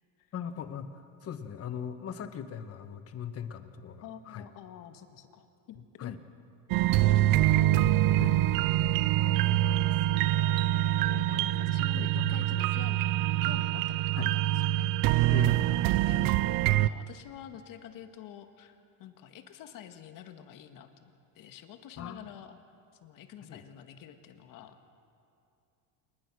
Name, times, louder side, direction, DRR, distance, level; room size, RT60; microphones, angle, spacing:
voice 1, 0.3-4.5 5.7-6.2 7.8-9.0 9.4-10.2 11.0-12.6 14.1-14.3 15.3-15.8 22.0-22.2 23.4-23.6, left 8 dB, 35° left, 9 dB, 1.4 m, -41 dB
voice 2, 4.0-6.3 6.7-7.7 9.7-10.2 10.8-15.3 15.7-21.0 21.4-22.6 23.0-24.9, left 9 dB, 50° left, 7 dB, 1.9 m, -48 dB
sound 1, 6.7-16.9, right 14 dB, 50° right, 0.6 m, -25 dB
27.5 x 20.0 x 6.3 m, 2.5 s
supercardioid pair, 120°, 43 cm